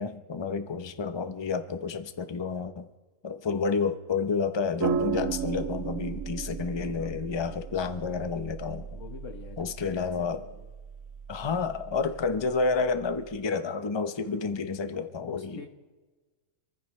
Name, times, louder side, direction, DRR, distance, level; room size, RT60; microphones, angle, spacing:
voice 1, 0.0-2.9 3.2-9.0 9.6-10.4 11.3-15.7, left 5 dB, 25° left, 0.7 m, -30 dB
sound 1, 4.8-13.4, right 7 dB, 85° right, 1.2 m, -36 dB
voice 2, 8.9-9.9 15.2-15.7, left 5 dB, 65° left, 1.5 m, -44 dB
27.0 x 15.0 x 3.2 m
omnidirectional pair, 1.4 m